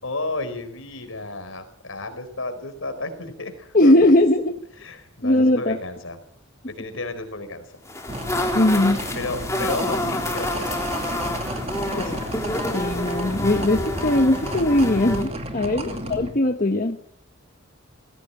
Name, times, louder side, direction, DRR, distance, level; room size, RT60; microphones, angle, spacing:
voice 1, 0.0-4.1 4.8-6.2 6.8-7.6 9.1-11.0 11.8-12.5 15.8-16.0, left 2 dB, 75° left, 8 dB, 4.4 m, -33 dB
voice 2, 3.7-4.5 5.2-5.8 8.5-9.0 12.0-12.2 12.7-17.0, left 1 dB, 40° left, 5 dB, 1.3 m, -19 dB
sound 1, 7.9-15.3, left 1 dB, 15° left, 3.2 m, -28 dB
sound 2, 8.1-16.3, right 1 dB, 30° right, 2.6 m, -32 dB
20.0 x 16.0 x 8.9 m, 0.67 s
head